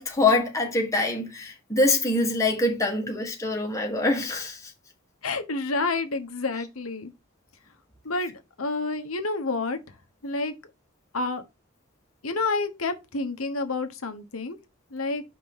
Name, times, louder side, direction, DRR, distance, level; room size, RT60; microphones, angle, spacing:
voice 1, 0.0-4.7, left 2 dB, 15° left, 1.6 m, -24 dB
voice 2, 5.2-7.1 8.0-9.8 10.2-10.5 11.1-11.4 12.2-14.6 14.9-15.2, left 3 dB, 75° left, 1.1 m, -29 dB
5.5 x 3.8 x 5.5 m
head